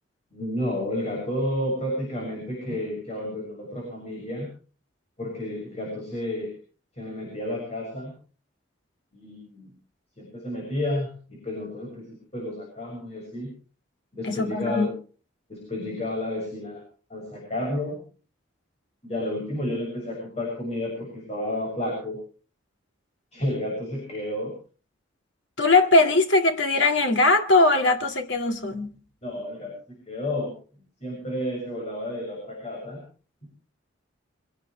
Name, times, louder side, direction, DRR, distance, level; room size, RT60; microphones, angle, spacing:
voice 1, 0.3-4.5 5.2-6.5 7.0-8.1 9.1-9.7 10.2-13.5 14.1-14.9 15.5-16.8 17.1-18.0 19.0-22.2 23.3-24.5 29.2-30.5 31.0-33.0, left 1 dB, 30° left, 6.9 m, -31 dB
voice 2, 14.2-14.9 25.6-29.0, left 2 dB, 65° left, 2.0 m, -20 dB
24.5 x 17.0 x 3.2 m
head